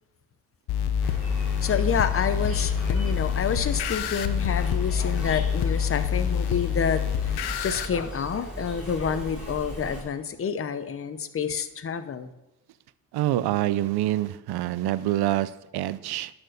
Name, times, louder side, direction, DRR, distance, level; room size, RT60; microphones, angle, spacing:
sound 1, 0.7-7.9, left 8 dB, 75° left, 0.7 m, -27 dB
Insect, 1.0-10.0, right 1 dB, ahead, 3.5 m, -37 dB
voice 1, 1.6-7.0 7.6-12.3, left 7 dB, 35° left, 11 dB, 0.7 m, -28 dB
voice 2, 13.1-16.3, right 14 dB, 75° right, 17 dB, 0.5 m, -26 dB
10.5 x 4.4 x 6.5 m, 0.94 s
cardioid pair, 105°, 39 cm